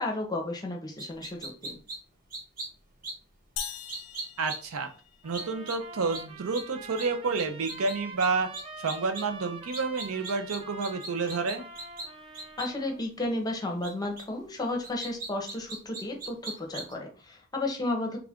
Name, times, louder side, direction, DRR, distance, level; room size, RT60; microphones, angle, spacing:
voice 1, 0.0-1.8 12.6-18.2, left 2 dB, 20° left, 1 dB, 0.7 m, -33 dB
sound 1, 1.0-2.0 2.3-2.7 3.0-3.1 3.6-4.6 5.3-5.7 6.1-6.2 6.5-6.6 7.0-7.1 7.3-7.9 8.2-8.3 8.5-9.2 9.7-12.0 12.3-12.7 13.8-13.9 14.2-14.3 14.8-16.9, right 2 dB, 40° right, 1.1 m, -38 dB
sound 2, 3.6-5.5, left 9 dB, 85° left, 0.4 m, -41 dB
voice 2, 4.4-4.9 5.2-8.5 8.8-11.7, right 4 dB, 65° right, 6 dB, 0.5 m, -29 dB
sound 3, 5.2-13.0, right 3 dB, 25° right, 0.6 m, -45 dB
3.3 x 2.5 x 3.5 m, 0.38 s
head